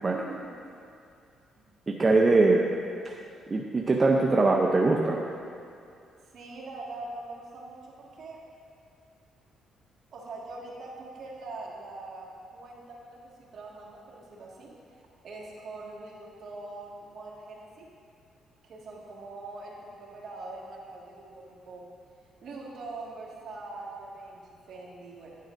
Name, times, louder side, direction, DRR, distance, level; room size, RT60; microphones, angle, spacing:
voice 1, 0.0-0.5 6.3-8.4 10.1-17.9 18.6-21.9 22.4-25.4, right 2 dB, 60° right, -3 dB, 1.7 m, -43 dB
voice 2, 1.9-2.7 3.0-3.2 3.5-5.2, right 3 dB, 30° right, 0 dB, 0.5 m, -22 dB
10.5 x 9.1 x 2.5 m, 2.4 s
cardioid pair, 90°, 0 cm